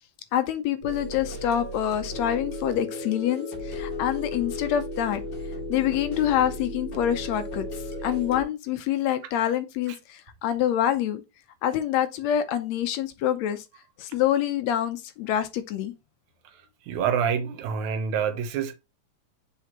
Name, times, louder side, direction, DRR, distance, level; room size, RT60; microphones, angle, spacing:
voice 1, 0.3-5.2 5.7-7.7 8.0-11.2 11.6-13.6 14.0-15.9, left 10 dB, 75° left, 1.7 m, -26 dB
sound 1, 0.8-8.4, left 2 dB, 40° left, 2.9 m, -35 dB
voice 2, 16.9-18.7, right 7 dB, 75° right, 2.3 m, -26 dB
6.7 x 4.8 x 3.0 m
omnidirectional pair, 3.5 m